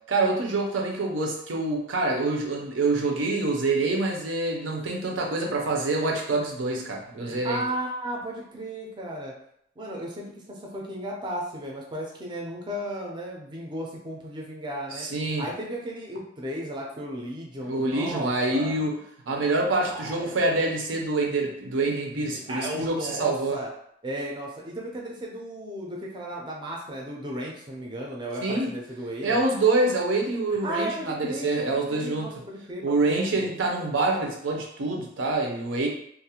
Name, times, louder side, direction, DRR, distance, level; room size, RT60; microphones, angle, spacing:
voice 1, 0.1-7.6 14.9-15.5 17.6-19.0 19.3-23.6 28.4-28.7 29.2-32.3 32.8-35.9, right 2 dB, 90° right, 1 dB, 0.5 m, -26 dB
voice 2, 7.2-9.3 9.8-15.1 15.4-18.8 19.8-20.4 22.1-23.7 24.0-29.4 30.6-33.5, right 1 dB, 25° right, -2 dB, 0.4 m, -35 dB
2.4 x 2.0 x 2.8 m, 0.70 s
head